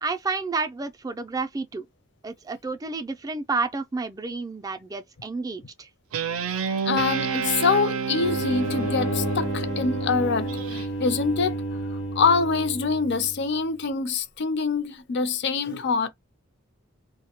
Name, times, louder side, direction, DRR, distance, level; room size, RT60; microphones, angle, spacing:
voice 1, 0.0-1.9 2.2-5.9, right 3 dB, 15° right, 0.3 m, -30 dB
Guitar, 6.1-10.9, right 6 dB, 85° right, 0.4 m, -29 dB
voice 2, 6.9-11.6 12.2-16.1, left 5 dB, 55° left, 0.5 m, -25 dB
sound 1, 8.2-13.6, right 1 dB, 85° left, 0.9 m, -31 dB
2.2 x 2.1 x 2.8 m
head